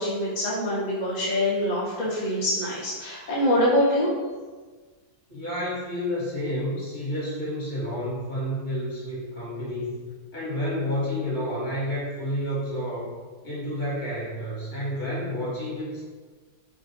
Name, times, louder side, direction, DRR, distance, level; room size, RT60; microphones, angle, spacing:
voice 1, 0.0-4.1, left 1 dB, 50° left, -7 dB, 0.5 m, -24 dB
voice 2, 5.3-10.0 10.3-13.1 13.4-16.0, equal, 30° left, -8 dB, 1.5 m, -30 dB
3.3 x 2.5 x 4.1 m, 1.4 s
omnidirectional pair, 1.6 m